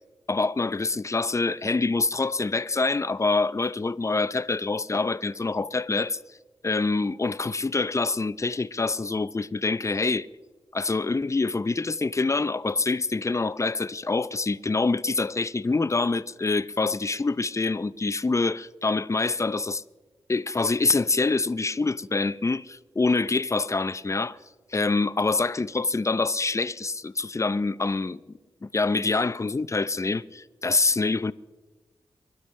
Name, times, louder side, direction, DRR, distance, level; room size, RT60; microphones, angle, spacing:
voice 1, 0.3-6.2 6.6-10.3 10.7-19.8 20.3-24.4 24.7-28.2 28.6-31.3, left 3 dB, 30° left, 0.6 m, -25 dB
25.0 x 12.0 x 3.3 m
supercardioid pair, 40°, 10 cm